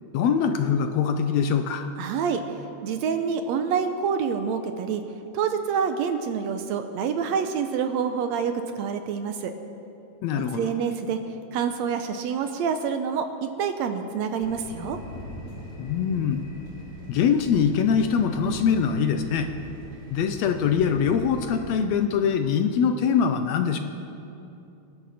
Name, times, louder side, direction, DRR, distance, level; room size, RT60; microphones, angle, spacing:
voice 1, 0.1-1.9 10.2-10.7 15.8-16.4 17.1-19.5 20.1-23.8, left 7 dB, 75° left, 7 dB, 1.7 m, -23 dB
voice 2, 2.0-2.6 2.8-5.0 5.3-9.5 10.4-11.2 11.5-15.0, right 6 dB, 75° right, 7 dB, 1.8 m, -27 dB
sound 1, 14.4-21.8, left 1 dB, 45° left, 4.3 m, -41 dB
25.5 x 11.0 x 4.1 m, 2.8 s
omnidirectional pair, 3.5 m